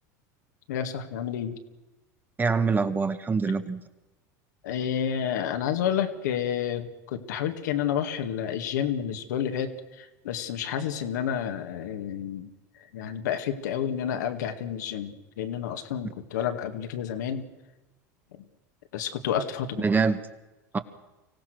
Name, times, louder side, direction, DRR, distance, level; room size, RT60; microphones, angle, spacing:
voice 1, 0.7-1.6 4.6-12.5 12.9-17.5 18.9-19.8, left 9 dB, 80° left, 6 dB, 2.1 m, -30 dB
voice 2, 2.4-3.8 19.8-20.2 20.7-20.8, right 4 dB, 20° right, 9 dB, 1.7 m, -24 dB
25.0 x 16.5 x 6.4 m, 1.1 s
hypercardioid pair, 90°, 9 cm